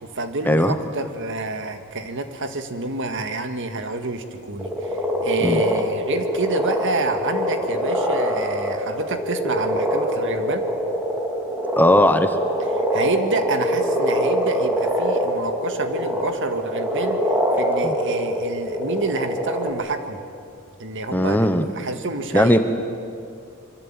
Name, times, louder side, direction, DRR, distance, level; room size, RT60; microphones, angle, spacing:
voice 1, 0.0-10.7 12.8-17.2 17.5-20.2 20.8-22.6, right 2 dB, 60° right, 7 dB, 1.9 m, -28 dB
sound 1, 4.6-19.7, equal, 10° right, 3.6 m, -24 dB
voice 2, 11.8-12.3 17.8-17.9 21.1-21.7 22.3-22.6, left 1 dB, 10° left, 8 dB, 1.1 m, -17 dB
26.0 x 23.5 x 9.0 m, 2.4 s
head